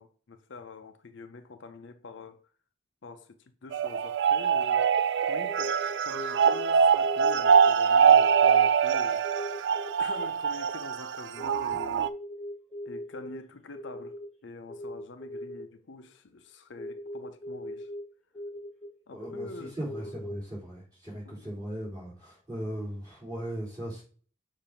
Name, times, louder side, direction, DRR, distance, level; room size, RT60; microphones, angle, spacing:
voice 1, 0.0-2.5 3.0-4.9 5.3-9.2 10.0-12.1 12.8-17.9 19.1-20.1 21.1-21.5, left 4 dB, 60° left, 0.6 m, -45 dB
sound 1, 3.7-12.1, right 7 dB, 60° right, 0.3 m, -23 dB
sound 2, 5.5-6.7 7.0-7.7 8.0-8.7 9.2-10.2 11.4-13.4 13.7-14.3 14.7-15.7 16.8-18.0 18.3-18.9 19.2-20.4, equal, 5° left, 1.6 m, -40 dB
voice 2, 19.1-24.0, right 1 dB, 20° right, 3.3 m, -38 dB
6.9 x 2.6 x 5.7 m
head